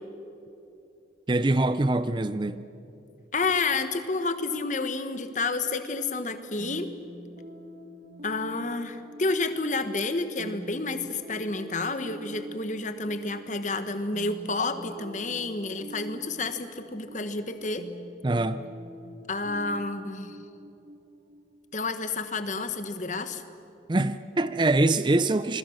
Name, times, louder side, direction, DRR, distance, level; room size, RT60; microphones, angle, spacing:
voice 1, 1.3-2.6 18.2-18.7 23.9-25.6, right 2 dB, 25° right, 0.5 m, -24 dB
voice 2, 3.3-6.9 8.2-17.9 19.3-20.4 21.7-23.4, left 3 dB, 40° left, 1.3 m, -30 dB
sound 1, 6.6-22.2, equal, 50° right, 1.3 m, -46 dB
27.0 x 22.0 x 6.5 m
head